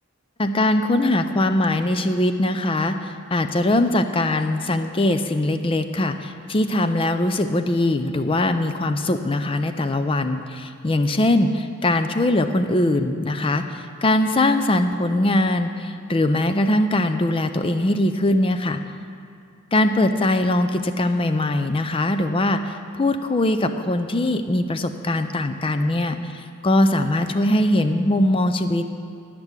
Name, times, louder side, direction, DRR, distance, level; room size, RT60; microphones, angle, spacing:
voice 1, 0.4-18.8 19.7-29.0, left 1 dB, 25° left, 9 dB, 0.5 m, -21 dB
11.5 x 6.0 x 8.2 m, 2.3 s
head